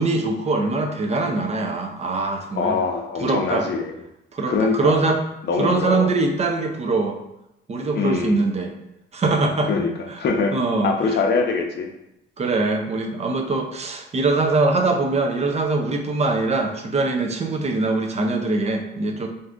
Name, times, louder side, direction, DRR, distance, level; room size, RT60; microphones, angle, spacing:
voice 1, 0.0-2.8 3.2-3.7 4.3-5.2 5.6-7.2 7.7-8.7 9.1-9.7 10.1-10.2 10.5-11.2 12.4-19.3, right 3 dB, 35° right, 3 dB, 0.5 m, -22 dB
voice 2, 2.6-4.0 4.5-5.1 5.4-6.1 7.9-8.4 9.7-9.9 10.2-10.5 10.8-11.9, left 4 dB, 60° left, 3 dB, 0.6 m, -23 dB
2.6 x 2.4 x 3.5 m, 0.84 s
cardioid pair, 90°, 20 cm